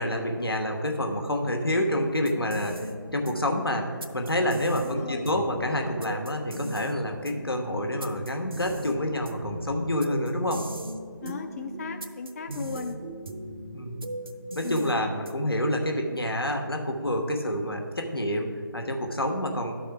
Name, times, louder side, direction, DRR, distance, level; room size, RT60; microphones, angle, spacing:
voice 1, 0.0-10.6 13.7-14.1 14.5-19.7, left 1 dB, 90° left, 3 dB, 1.3 m, -28 dB
sound 1, 2.1-15.6, right 1 dB, 75° right, 0.7 m, -39 dB
voice 2, 4.8-5.3 11.2-13.0 14.6-15.0, left 5 dB, 40° left, 5 dB, 0.4 m, -36 dB
12.0 x 4.2 x 4.7 m, 2.2 s
figure-of-eight pair, 150°, 12 cm